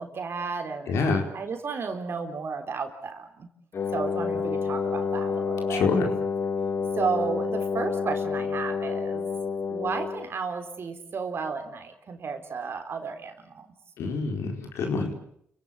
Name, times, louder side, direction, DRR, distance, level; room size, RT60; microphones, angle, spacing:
voice 1, 0.0-3.5 3.9-5.9 7.0-9.3 9.7-13.7, right 5 dB, 60° right, 6 dB, 3.9 m, -33 dB
voice 2, 0.9-1.3 5.7-6.1 14.0-15.1, left 4 dB, 80° left, 4 dB, 4.6 m, -26 dB
Wind instrument woodwind instrument, 3.7-10.3, left 5 dB, 60° left, 1.7 m, -29 dB
30.0 x 17.0 x 8.5 m, 0.69 s
supercardioid pair, 55°, 5 cm